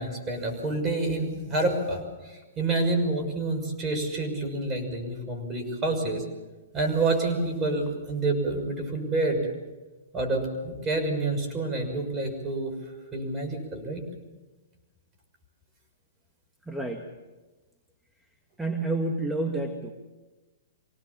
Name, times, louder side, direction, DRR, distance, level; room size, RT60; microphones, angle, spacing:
voice 1, 0.0-6.2 6.7-9.4 10.1-12.7 13.1-14.0, right 2 dB, 20° right, 3 dB, 6.2 m, -28 dB
voice 2, 16.7-17.1 18.6-19.9, right 2 dB, 5° right, 3 dB, 1.8 m, -29 dB
25.0 x 18.5 x 7.2 m, 1.2 s
hypercardioid pair, 130°, 0 cm